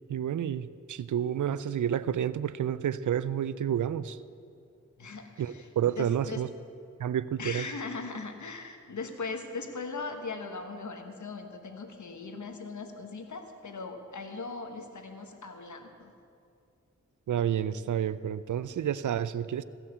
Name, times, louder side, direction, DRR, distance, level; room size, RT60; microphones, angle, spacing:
voice 1, 0.1-4.2 5.4-6.5 7.0-7.7 17.3-19.6, right 9 dB, 80° right, 16 dB, 0.5 m, -30 dB
voice 2, 5.0-5.7 6.0-6.4 7.4-16.1, left 4 dB, 75° left, 5 dB, 1.3 m, -39 dB
16.0 x 6.0 x 8.0 m, 2.4 s
cardioid pair, 45°, 30 cm